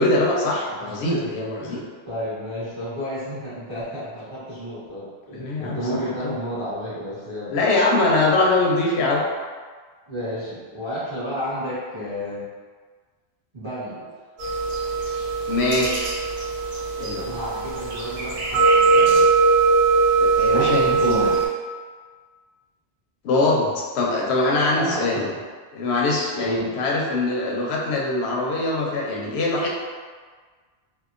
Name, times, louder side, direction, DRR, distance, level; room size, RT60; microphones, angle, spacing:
voice 1, 0.0-1.8 5.3-6.3 7.5-9.2 15.5-16.1 17.0-17.4 20.2-21.3 23.2-25.3 25.7-29.7, left 2 dB, 90° left, -2 dB, 0.8 m, -23 dB
voice 2, 0.8-1.3 1.6-7.7 10.1-12.5 13.5-14.0 17.0-19.3 20.5-21.3 24.7-25.2 26.4-26.7, equal, 25° right, -12 dB, 1.1 m, -31 dB
sound 1, 14.4-21.5, right 4 dB, 90° right, 1.0 m, -20 dB
2.8 x 2.1 x 2.4 m, 1.5 s
omnidirectional pair, 1.1 m